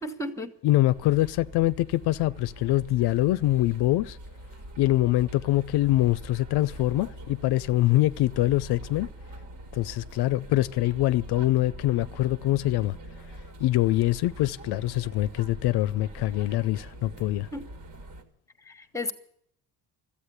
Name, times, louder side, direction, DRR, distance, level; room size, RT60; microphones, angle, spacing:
voice 1, 0.0-0.5 17.5-17.6 18.6-19.1, left 1 dB, 10° left, 1.1 m, -33 dB
voice 2, 0.6-4.2 4.8-9.1 9.7-13.0 13.6-17.5, left 16 dB, 80° left, 0.5 m, -24 dB
sound 1, 0.9-18.2, right 1 dB, 50° right, 1.8 m, -44 dB
13.5 x 8.5 x 9.7 m
cardioid pair, 125°, 39 cm